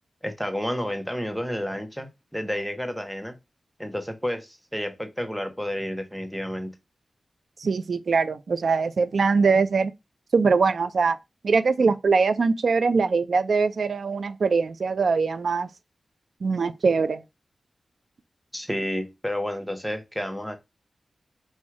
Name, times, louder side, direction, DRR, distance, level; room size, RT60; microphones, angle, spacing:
voice 1, 0.2-3.4 3.8-6.7 18.5-20.6, equal, ahead, 0.8 m, -30 dB
voice 2, 7.6-9.9 10.3-11.2 11.4-15.7 16.4-17.2, right 4 dB, 70° right, 0.4 m, -22 dB
4.3 x 2.4 x 4.6 m
wide cardioid pair, 95°, 0 cm